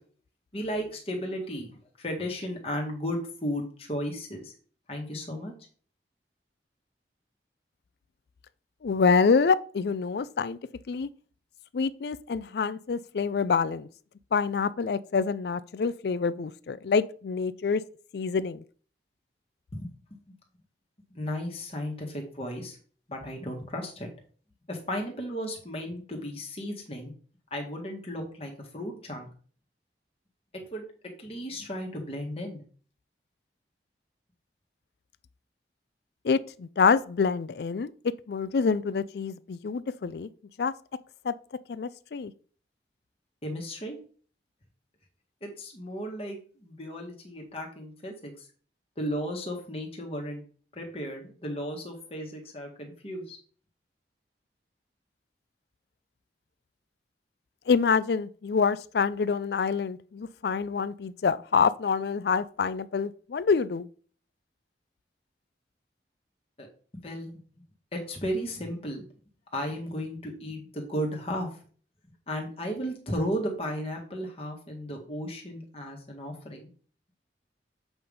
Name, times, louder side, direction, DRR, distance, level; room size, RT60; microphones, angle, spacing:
voice 1, 0.5-1.7 2.0-4.5 4.9-5.5 19.7-20.2 21.1-22.8 23.1-24.1 24.7-27.1 27.5-29.3 30.5-32.6 43.4-44.0 45.4-48.5 49.0-50.4 50.7-53.4 66.6-66.7 66.9-67.4 67.9-69.0 69.5-71.6 72.3-76.7, equal, 35° left, 1.8 m, -35 dB
voice 2, 8.8-10.6 10.9-11.1 11.7-13.9 14.3-17.8 18.1-18.6 36.2-37.9 38.3-40.3 40.6-40.7 41.2-41.3 41.7-42.3 57.7-63.9, left 5 dB, 65° left, 0.4 m, -26 dB
8.0 x 3.4 x 5.4 m
head